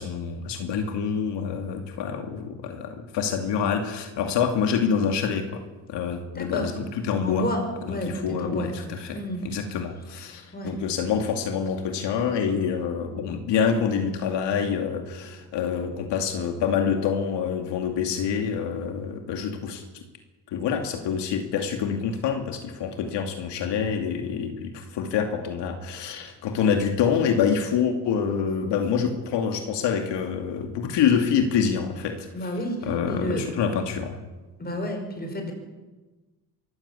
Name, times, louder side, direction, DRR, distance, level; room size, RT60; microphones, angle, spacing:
voice 1, 0.0-7.5 7.9-9.2 9.4-20.0 20.5-32.5 32.8-34.2, left 7 dB, 80° left, 4 dB, 2.6 m, -26 dB
voice 2, 6.4-6.7 7.2-8.7 9.1-9.4 10.5-10.7 32.3-32.8 33.1-33.4 34.6-35.5, left 1 dB, 25° left, 4 dB, 5.4 m, -30 dB
24.0 x 14.5 x 8.4 m, 1.2 s
cardioid pair, 135°, 41 cm